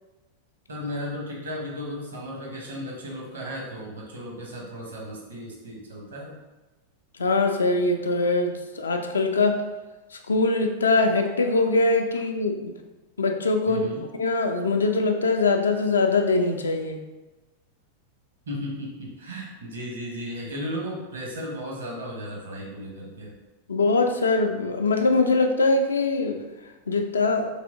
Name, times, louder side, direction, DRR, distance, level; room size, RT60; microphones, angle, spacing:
voice 1, 0.7-6.4 13.7-14.0 18.5-23.3, equal, 70° right, -2 dB, 0.9 m, -35 dB
voice 2, 7.2-9.6 10.3-12.7 13.2-17.0 23.7-26.4 26.9-27.5, left 3 dB, 70° left, 5 dB, 0.3 m, -22 dB
3.3 x 2.9 x 2.5 m, 1.1 s
figure-of-eight pair, 90°, 0 cm